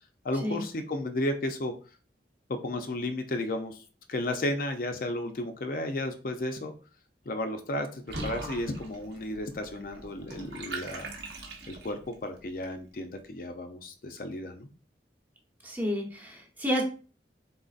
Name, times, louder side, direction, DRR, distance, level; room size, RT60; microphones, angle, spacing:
voice 1, 0.2-1.7 2.5-3.8 4.1-6.7 7.3-14.7, left 1 dB, 50° left, 6 dB, 0.5 m, -33 dB
Water / Bathtub (filling or washing), 8.1-12.1, right 2 dB, 75° right, 1.0 m, -41 dB
voice 2, 15.6-16.8, equal, 10° right, -1 dB, 0.9 m, -30 dB
4.1 x 3.9 x 2.4 m, 0.37 s
head